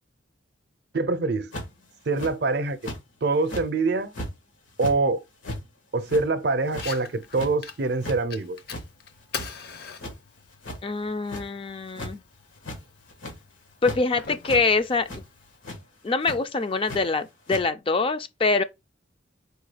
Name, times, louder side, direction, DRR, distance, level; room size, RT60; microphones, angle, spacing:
voice 1, 0.9-1.5 2.1-2.8 3.2-4.2 4.8-5.2 5.9-8.6, right 3 dB, 55° right, 0.6 m, -24 dB
sound 1, 1.5-1.8 2.2-2.3 2.8-3.0 3.4-3.7 4.1-4.3 4.7-4.9 5.4-5.6 6.0-6.2 6.7-6.9 7.3-7.5 7.9-8.2 8.7-8.8 9.2-9.7 10.0-10.1 10.6-10.8 11.3-11.4 11.9-12.1 12.6-12.8 13.1-13.4 13.8-14.0 14.4-14.6 15.1-15.2 15.6-15.8 16.2-16.4 16.9-17.0 17.5-17.6, left 1 dB, 90° left, 1.7 m, -35 dB
Fire, 6.7-15.7, left 6 dB, 55° left, 0.7 m, -43 dB
voice 2, 10.8-12.2 13.8-15.2 16.0-18.6, left 3 dB, 25° left, 0.3 m, -24 dB
4.7 x 2.3 x 4.8 m
head